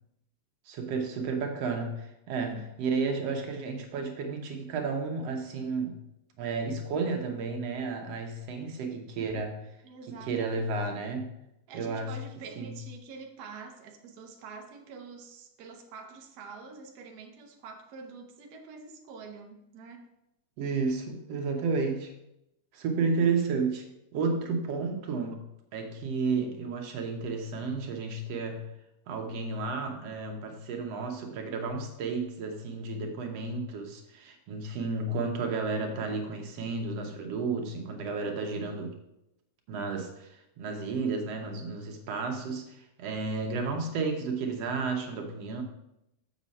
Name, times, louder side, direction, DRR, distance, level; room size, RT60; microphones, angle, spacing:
voice 1, 0.7-6.0 6.4-9.6 10.1-11.3 11.7-12.2 12.6-12.8 20.6-22.1 22.7-23.8 24.1-25.4 25.7-28.6 29.1-38.9 39.7-45.6, right 4 dB, 65° right, 3 dB, 2.0 m, -32 dB
voice 2, 2.4-2.7 9.8-10.7 11.7-20.1, right 4 dB, 90° right, 3 dB, 0.8 m, -46 dB
7.3 x 7.0 x 4.2 m, 0.83 s
omnidirectional pair, 3.3 m